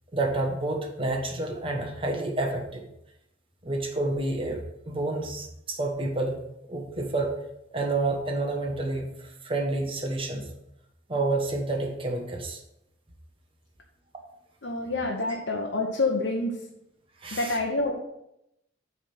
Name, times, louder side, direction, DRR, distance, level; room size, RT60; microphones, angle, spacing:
voice 1, 0.1-2.8 3.6-4.6 4.8-6.4 6.7-7.3 7.7-9.1 9.4-10.4 11.1-12.6 17.2-17.6, right 2 dB, 30° right, 1 dB, 1.2 m, -29 dB
voice 2, 14.6-16.6 17.3-17.9, left 2 dB, 70° left, -1 dB, 1.0 m, -27 dB
8.4 x 3.5 x 6.0 m, 0.82 s
head